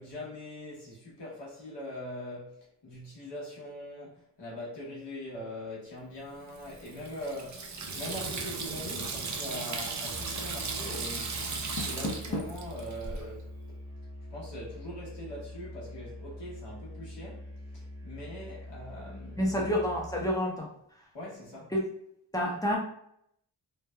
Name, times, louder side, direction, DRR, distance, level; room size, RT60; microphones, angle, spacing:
voice 1, 0.0-11.4 11.8-13.5 14.3-19.6 21.1-21.7, left 1 dB, 70° left, 1.1 m, -42 dB
Water tap faucet / Sink (filling or washing), 6.5-13.2, right 4 dB, 45° right, 0.5 m, -36 dB
Musical instrument, 10.1-20.4, left 1 dB, 60° right, 1.4 m, -44 dB
Door, 11.5-12.7, left 1 dB, 45° left, 0.7 m, -36 dB
voice 2, 19.4-20.7 21.7-21.8 22.3-22.8, equal, 10° left, 0.6 m, -28 dB
3.1 x 2.1 x 2.2 m
wide cardioid pair, 75°, 43 cm